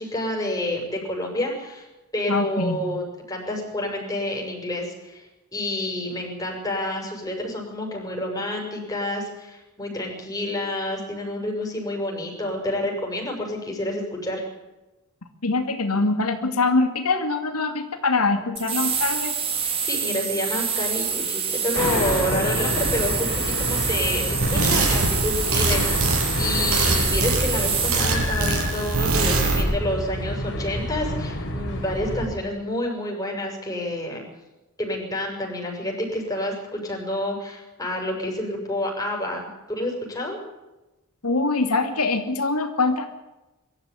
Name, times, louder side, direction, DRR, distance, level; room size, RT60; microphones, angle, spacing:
voice 1, 0.0-1.9 2.1-14.5 19.8-34.2 34.8-40.4, left 1 dB, 15° left, 0 dB, 7.1 m, -29 dB
voice 2, 2.3-2.9 15.4-19.3 41.2-43.1, left 3 dB, 90° left, 6 dB, 2.6 m, -23 dB
sound 1, 18.6-28.2, right 6 dB, 25° right, 3.3 m, -26 dB
sound 2, 21.7-32.3, left 1 dB, 55° left, 4.8 m, -28 dB
sound 3, 24.4-29.6, right 3 dB, 80° right, 7.3 m, -24 dB
23.5 x 14.0 x 9.9 m, 1.0 s
head